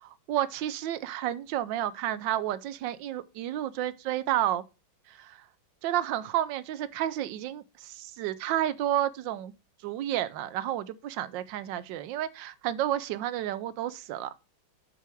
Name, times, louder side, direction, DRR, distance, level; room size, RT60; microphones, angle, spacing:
voice 1, 0.0-4.6 5.1-5.4 5.8-9.5 9.8-14.3, right 12 dB, 75° right, 1.2 m, -31 dB
6.9 x 4.5 x 5.9 m
omnidirectional pair, 2.2 m